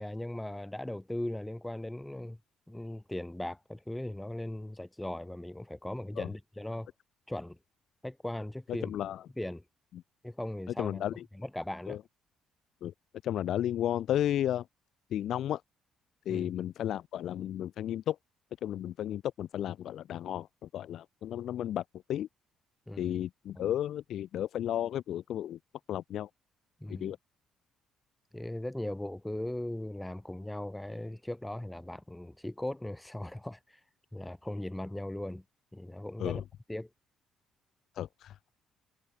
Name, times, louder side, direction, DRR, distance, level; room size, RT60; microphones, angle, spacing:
voice 1, 0.0-2.4 2.7-6.9 7.3-7.6 8.0-8.9 9.4-9.6 10.2-11.0 11.3-12.0 16.3-16.5 22.9-23.2 23.6-23.7 26.8-27.1 28.3-33.8 34.1-35.4 35.7-36.4 36.7-36.9, left 1 dB, 10° left, 6.5 m, -38 dB
voice 2, 8.7-9.2 9.9-10.0 10.8-11.2 11.9-12.0 12.8-12.9 13.2-14.7 15.1-15.6 16.3-18.2 18.6-22.3 23.0-25.6 25.9-26.3 26.9-27.2 36.2-36.4 37.9-38.4, left 11 dB, 65° left, 1.9 m, -33 dB
hypercardioid pair, 55°, 0 cm